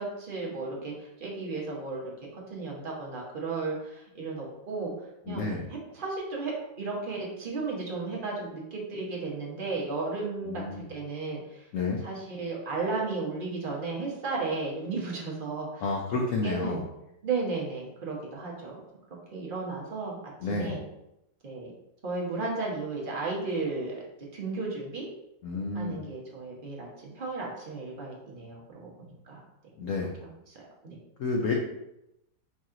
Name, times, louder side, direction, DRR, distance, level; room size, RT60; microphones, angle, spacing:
voice 1, 0.0-2.0 2.3-4.9 5.3-11.6 12.0-15.8 16.1-16.8 17.2-18.8 19.3-20.2 20.5-20.8 21.4-21.7 22.0-24.0 24.3-25.1 25.7-29.4 30.5-31.0, right 3 dB, 35° right, -3 dB, 0.9 m, -34 dB
voice 2, 5.3-5.7 10.4-10.9 11.7-12.0 15.8-16.8 20.4-20.8 25.4-26.0 29.8-30.1 31.2-31.5, left 3 dB, 75° left, 0 dB, 0.7 m, -30 dB
4.7 x 3.0 x 3.7 m, 0.87 s
omnidirectional pair, 2.0 m